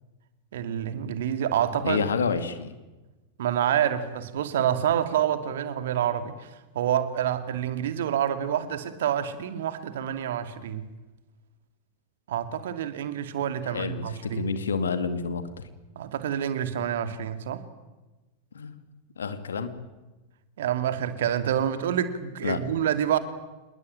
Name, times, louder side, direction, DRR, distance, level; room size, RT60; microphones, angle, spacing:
voice 1, 0.5-2.0 3.4-6.5 6.7-10.9 12.3-14.5 16.0-17.6 20.6-23.2, right 10 dB, 60° right, 10 dB, 2.4 m, -27 dB
voice 2, 1.8-2.7 13.7-15.7 18.5-18.7 19.2-19.7 22.4-22.6, left 5 dB, 70° left, 10 dB, 2.4 m, -29 dB
27.5 x 21.0 x 9.1 m, 1.1 s
figure-of-eight pair, 90°, 0 cm